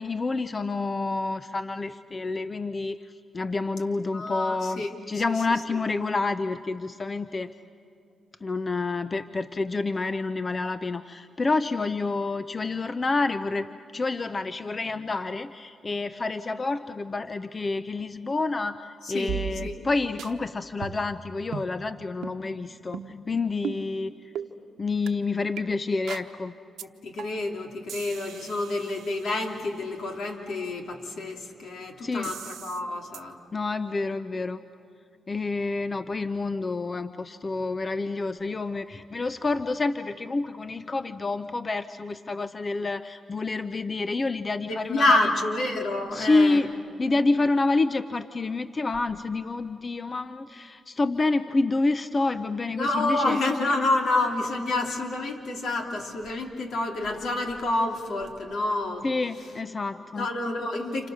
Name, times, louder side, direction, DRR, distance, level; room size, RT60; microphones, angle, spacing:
voice 1, 0.0-3.0 3.3-7.5 8.4-23.0 23.3-24.1 24.8-26.5 32.0-32.3 33.5-34.6 35.3-45.3 46.1-46.7 47.0-53.4 59.0-60.3, left 3 dB, 35° left, 11 dB, 0.7 m, -28 dB
voice 2, 4.1-5.3 19.0-19.3 19.6-19.7 27.0-33.4 44.7-46.6 52.7-59.1 60.1-61.1, left 2 dB, 75° left, 2 dB, 3.2 m, -28 dB
sound 1, 19.3-19.9 20.2-20.3 20.8-21.2 21.5-21.7 22.2-22.4 22.9-23.2 23.6-23.8 24.4-24.5 25.1-25.2 25.6-25.7 26.1-26.3 26.8-26.9 27.2-27.5 27.9-29.7 32.2-32.8 33.1-33.2, right 9 dB, 90° right, 1.0 m, -37 dB
30.0 x 29.0 x 6.5 m, 2.6 s
cardioid pair, 70°, 0 cm